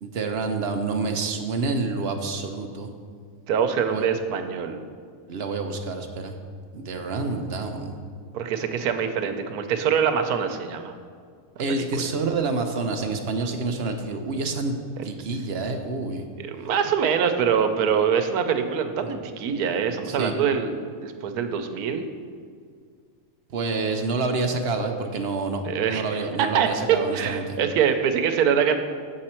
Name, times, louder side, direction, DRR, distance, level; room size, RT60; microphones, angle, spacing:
voice 1, 0.0-2.9 3.9-4.0 5.3-6.3 6.7-7.9 11.6-14.8 15.0-16.3 19.0-19.1 20.1-20.3 23.5-25.6 25.9-27.4, right 3 dB, 55° right, 5 dB, 0.8 m, -28 dB
voice 2, 3.5-4.8 8.3-10.9 11.7-12.1 15.0-15.1 16.4-20.8 21.0-22.1 25.6-28.8, right 7 dB, 85° right, 7 dB, 1.2 m, -24 dB
7.6 x 7.3 x 4.3 m, 2.1 s
omnidirectional pair, 1.6 m